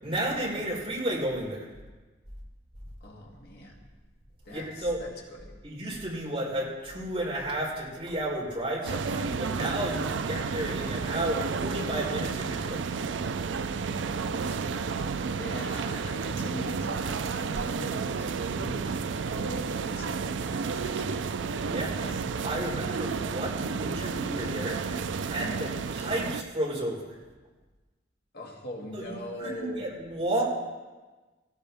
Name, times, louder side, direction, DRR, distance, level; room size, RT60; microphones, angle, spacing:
voice 1, 0.0-1.7 4.5-5.0 5.6-12.8 21.6-22.1 22.4-24.8 25.3-27.0 28.9-29.1 29.4-30.4, right 1 dB, 30° right, -5 dB, 4.7 m, -32 dB
voice 2, 3.0-3.8 4.5-5.6 13.9-15.1 15.3-21.3 21.8-22.2 28.3-29.9, left 1 dB, 60° left, -1 dB, 1.9 m, -42 dB
sound 1, 8.8-26.4, right 5 dB, 80° right, 0.5 m, -31 dB
17.0 x 15.5 x 3.5 m, 1.3 s
head